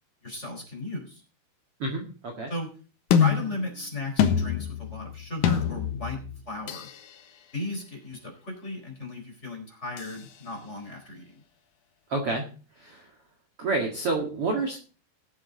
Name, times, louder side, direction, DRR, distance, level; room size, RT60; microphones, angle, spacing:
voice 1, 0.2-1.2 2.5-2.7 3.1-6.9 7.5-11.2, left 2 dB, 15° left, 1 dB, 4.1 m, -36 dB
voice 2, 1.8-2.5 12.1-12.5 12.8-13.1 13.6-14.8, right 3 dB, 45° right, 2 dB, 2.3 m, -29 dB
sound 1, 3.1-7.0 10.0-10.1, left 8 dB, 65° left, 2.1 m, -26 dB
19.5 x 7.5 x 3.9 m, 0.37 s
omnidirectional pair, 4.8 m